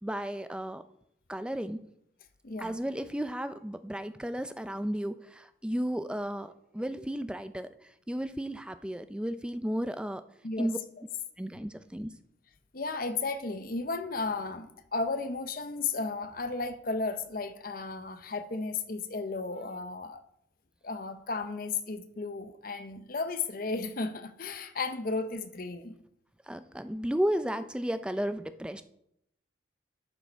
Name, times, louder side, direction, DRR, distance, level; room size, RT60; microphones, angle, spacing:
voice 1, 0.0-0.8 1.3-1.8 2.6-10.2 10.6-10.8 11.4-12.1 26.5-28.8, equal, 5° right, 11 dB, 0.4 m, -33 dB
voice 2, 2.4-2.8 10.4-10.7 12.7-20.2 20.8-26.0, left 3 dB, 45° left, 10 dB, 0.7 m, -34 dB
12.0 x 6.6 x 4.5 m, 0.76 s
head